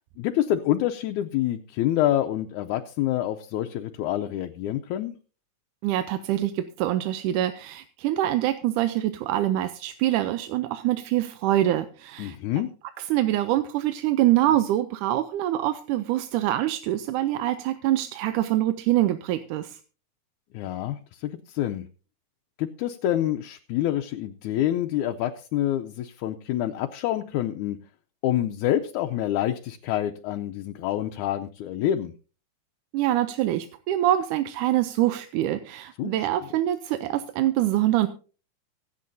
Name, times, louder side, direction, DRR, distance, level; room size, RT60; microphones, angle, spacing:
voice 1, 0.2-5.1 12.2-12.7 20.5-21.9 22.6-27.8 28.2-32.1 36.0-36.3, left 12 dB, 80° left, 5 dB, 2.1 m, -27 dB
voice 2, 5.8-12.4 13.0-19.8 32.9-38.1, right 13 dB, 90° right, 10 dB, 2.2 m, -25 dB
24.5 x 8.4 x 2.7 m, 0.36 s
omnidirectional pair, 3.5 m